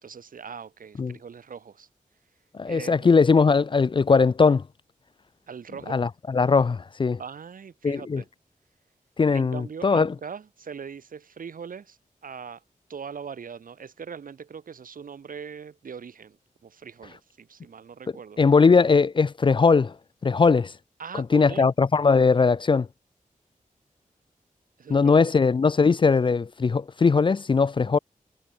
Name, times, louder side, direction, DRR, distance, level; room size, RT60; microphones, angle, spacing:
voice 1, 0.0-1.9 2.6-3.2 5.5-6.0 7.2-8.3 9.3-12.6 12.9-18.7 21.0-21.7 24.8-25.3, right 6 dB, 80° right, 3.8 m, -41 dB
voice 2, 2.5-4.6 5.9-7.2 7.8-8.2 9.2-10.1 18.4-19.9 20.2-20.7 21.3-22.9 24.9-28.0, left 4 dB, 35° left, 0.4 m, -20 dB
wide cardioid pair, 90°, 14 cm